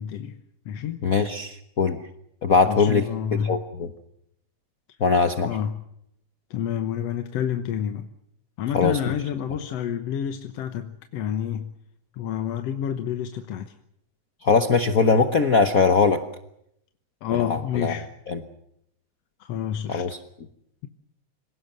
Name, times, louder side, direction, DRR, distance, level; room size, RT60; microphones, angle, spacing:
voice 1, 0.0-1.0 2.6-3.6 5.4-5.8 6.5-8.1 8.6-11.7 12.1-13.7 17.2-18.1 19.4-20.2, left 9 dB, 65° left, 8 dB, 2.0 m, -29 dB
voice 2, 1.0-2.0 2.4-3.0 3.4-3.9 5.0-5.5 8.7-9.0 14.4-16.2 17.4-17.9 18.3-18.4 19.9-20.2, left 4 dB, 90° left, 9 dB, 0.7 m, -21 dB
26.0 x 18.0 x 7.7 m, 0.76 s
omnidirectional pair, 3.4 m